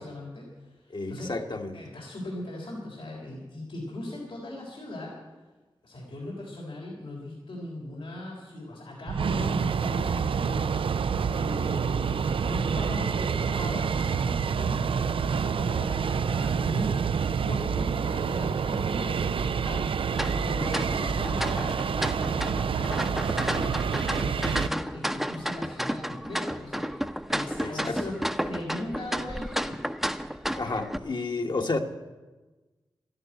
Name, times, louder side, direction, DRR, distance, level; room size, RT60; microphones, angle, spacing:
voice 1, 0.0-1.3 1.7-5.2 5.8-10.9 11.3-16.9 17.4-20.1 20.4-28.2 28.4-29.8, left 1 dB, 90° left, -3 dB, 3.7 m, -39 dB
voice 2, 0.9-1.8 21.0-21.2 27.6-28.1 30.6-31.8, left 3 dB, 55° left, 4 dB, 1.4 m, -31 dB
sound 1, 9.1-24.7, right 6 dB, 80° right, 0.4 m, -27 dB
sound 2, 20.1-31.0, equal, 5° right, 0.7 m, -32 dB
13.0 x 11.0 x 9.2 m, 1.2 s
wide cardioid pair, 60°, 9 cm